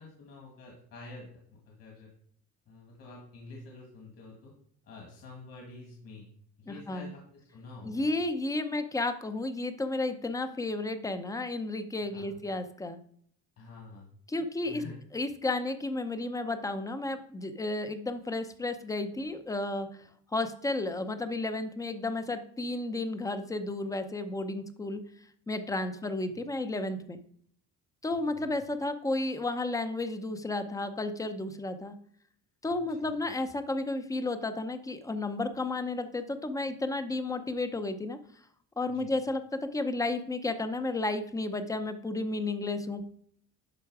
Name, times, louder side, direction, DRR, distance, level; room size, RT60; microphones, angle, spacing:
voice 1, 0.0-2.1 2.7-4.5 4.8-6.3 6.6-8.1 12.1-12.4 13.6-14.1 14.6-15.0 28.4-28.5 32.9-33.1 38.9-39.1, left 2 dB, 50° left, -2 dB, 2.1 m, -48 dB
voice 2, 6.7-7.1 7.8-13.0 14.3-14.8 15.1-19.9 20.3-25.0 25.5-27.2 28.0-31.9 32.6-38.2 38.8-43.1, left 2 dB, 10° left, 9 dB, 0.6 m, -32 dB
12.0 x 4.6 x 4.7 m, 0.62 s
cardioid pair, 155°, 33 cm